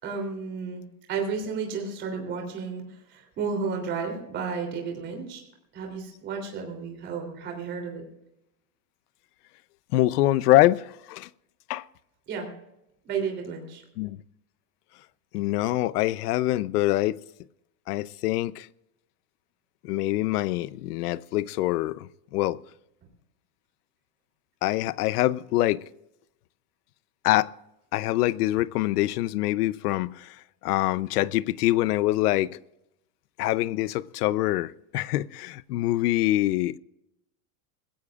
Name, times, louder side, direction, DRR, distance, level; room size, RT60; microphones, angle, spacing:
voice 1, 0.0-2.8 3.1-5.4 5.7-8.0 12.3-12.5 13.0-13.8, right 5 dB, 25° right, 3.2 m, -32 dB
voice 2, 9.9-11.3 11.7-11.8 14.0-14.2 15.3-17.2 17.9-18.7 19.8-22.6 24.6-25.8 27.2-27.5 27.9-30.4 30.6-32.6 33.4-36.8, left 16 dB, 85° left, 0.7 m, -25 dB
21.0 x 16.5 x 2.4 m
supercardioid pair, 180°, 45 cm